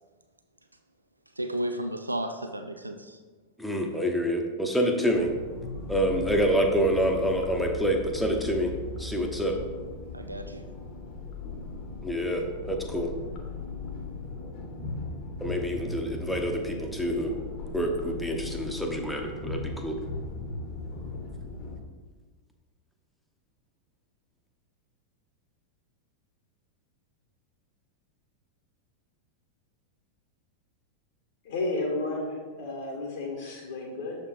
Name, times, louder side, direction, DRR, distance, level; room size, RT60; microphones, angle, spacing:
voice 1, 1.4-3.2 10.1-10.6, right 1 dB, 85° right, 7 dB, 0.3 m, -33 dB
voice 2, 3.6-5.3 5.9-8.7 9.0-9.5 12.0-13.1 15.4-17.4 17.7-20.0, equal, 5° left, 2 dB, 0.8 m, -27 dB
sound 1, 5.1-21.8, left 3 dB, 40° left, 1.0 m, -38 dB
voice 3, 31.4-34.2, left 2 dB, 60° left, -1 dB, 1.1 m, -32 dB
6.8 x 4.3 x 3.7 m, 1.4 s
figure-of-eight pair, 90°, 0 cm